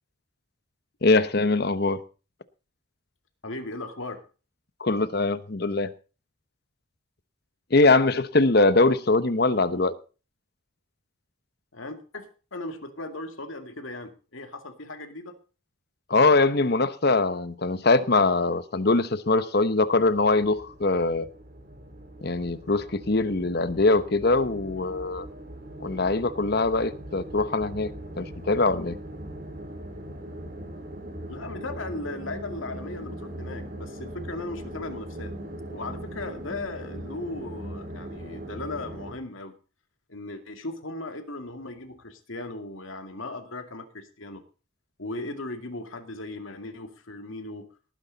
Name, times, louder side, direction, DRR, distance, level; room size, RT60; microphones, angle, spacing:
voice 1, 1.0-2.0 4.8-5.9 7.7-10.0 16.1-21.3 22.2-25.3 25.8-29.0, left 3 dB, 50° left, 13 dB, 1.0 m, -22 dB
voice 2, 3.4-4.2 11.7-15.3 31.3-35.3 35.7-39.5 40.1-44.4 45.0-47.7, left 2 dB, 75° left, 6 dB, 2.4 m, -37 dB
sound 1, 20.0-39.1, right 1 dB, 45° right, 3.3 m, -40 dB
18.5 x 10.0 x 4.1 m, 0.35 s
head